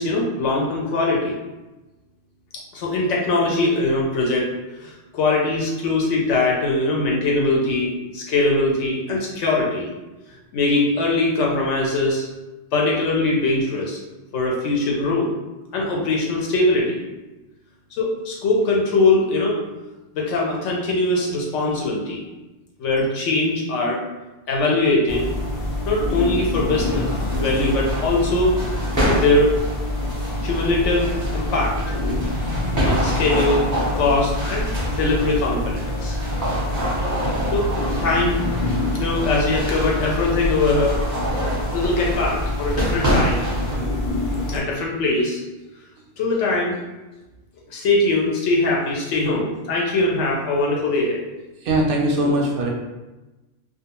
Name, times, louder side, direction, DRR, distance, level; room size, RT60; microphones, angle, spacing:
voice 1, 0.0-1.4 2.7-4.5 4.8-9.9 10.5-12.3 12.7-14.0 14.3-15.3 15.7-17.0 18.0-19.6 20.1-22.3 22.8-24.0 24.5-25.3 25.9-28.6 29.0-29.6 30.4-32.0 32.8-36.2 37.5-37.7 38.0-38.4 38.9-41.0 41.7-43.5 44.5-45.4 46.2-46.8 47.7-51.2, left 2 dB, 80° left, -2 dB, 0.9 m, -21 dB
sound 1, 25.1-44.6, left 1 dB, 60° left, 0.5 m, -26 dB
sound 2, 26.8-43.7, equal, 20° right, 0.6 m, -28 dB
voice 2, 51.6-52.7, right 1 dB, 60° right, -1 dB, 0.6 m, -22 dB
2.4 x 2.2 x 2.8 m, 1.1 s
omnidirectional pair, 1.2 m